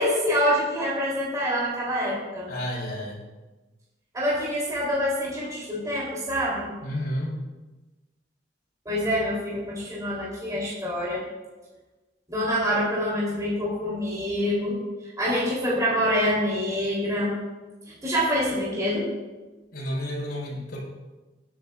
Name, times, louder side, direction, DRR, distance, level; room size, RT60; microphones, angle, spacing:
voice 1, 0.0-2.5 4.1-6.7 8.9-11.3 12.3-14.8 15.2-17.4 18.0-19.1, equal, 20° right, -7 dB, 3.7 m, -26 dB
voice 2, 2.5-3.2 6.8-7.3 19.7-20.8, equal, 60° left, -4 dB, 4.6 m, -31 dB
19.5 x 9.8 x 2.6 m, 1.2 s
head